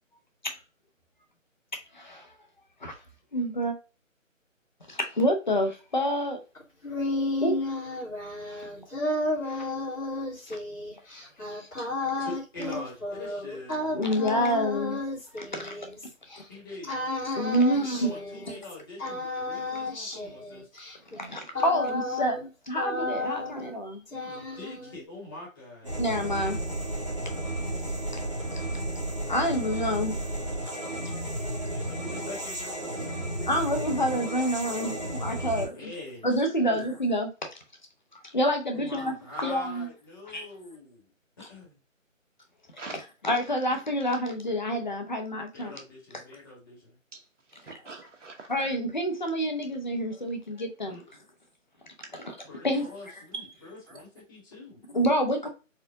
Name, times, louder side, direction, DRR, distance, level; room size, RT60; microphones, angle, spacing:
voice 1, 1.9-2.3 2.8-3.0 3.3-3.8 4.9-6.4 7.4-7.6 8.5-8.7 9.5-9.7 11.4-11.7 13.9-15.0 15.3-15.8 16.3-16.4 17.2-18.1 21.1-22.4 22.7-24.0 26.0-26.6 29.3-30.2 30.6-31.2 31.6-31.7 33.5-35.8 36.2-37.3 38.1-39.1 39.4-39.9 40.3-40.5 43.2-45.7 48.5-51.0 52.6-52.9 54.9-55.5, equal, 35° left, 0.7 m, -28 dB
sound 1, 6.6-16.4 16.9-18.7 19.0-22.5 22.7-23.8 24.1-25.0, left 2 dB, 90° left, 2.0 m, -33 dB
voice 2, 12.2-14.1 16.5-17.0 17.8-20.7 24.1-26.0 31.7-33.5 33.9-34.2 35.4-36.3 36.6-36.9 38.7-41.1 41.4-41.8 45.5-47.0 50.8-51.1 52.4-54.8 55.3-55.4, left 2 dB, 15° left, 1.2 m, -44 dB
sound 2, 25.8-35.7, right 1 dB, 25° right, 0.8 m, -33 dB
voice 3, 47.1-48.6 53.3-53.6 53.9-54.0, right 3 dB, 65° right, 1.2 m, -43 dB
4.3 x 2.5 x 2.6 m
figure-of-eight pair, 160°, 40 cm